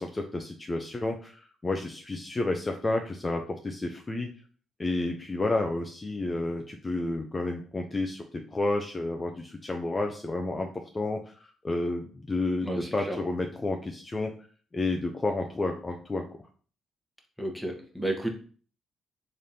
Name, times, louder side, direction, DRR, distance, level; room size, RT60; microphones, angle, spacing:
voice 1, 0.0-4.3 4.8-14.3 14.7-16.2, left 2 dB, 25° left, 3 dB, 0.5 m, -31 dB
voice 2, 12.6-13.2 17.4-18.3, right 1 dB, ahead, 2 dB, 1.1 m, -32 dB
3.7 x 3.3 x 2.8 m, 0.42 s
supercardioid pair, 65°, 0 cm